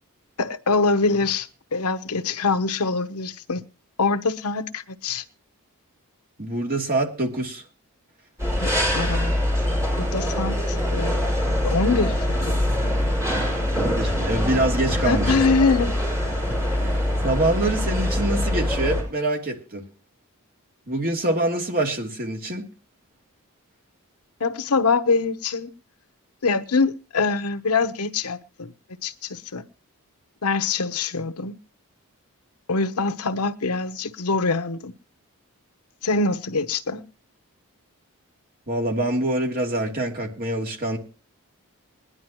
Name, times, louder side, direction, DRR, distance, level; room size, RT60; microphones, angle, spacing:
voice 1, 0.4-3.6 4.0-5.2 8.5-9.3 10.0-11.2 11.6-12.6 15.0-15.9 24.4-25.7 26.4-28.7 29.0-29.6 30.4-31.6 32.7-34.9 36.0-37.0, left 4 dB, 85° left, 0.9 m, -24 dB
voice 2, 6.4-7.7 13.7-15.5 16.5-19.8 20.9-22.7 38.7-41.0, right 1 dB, 40° right, 2.9 m, -25 dB
sound 1, 8.4-19.0, left 1 dB, 15° right, 5.7 m, -24 dB
20.5 x 11.5 x 3.0 m
head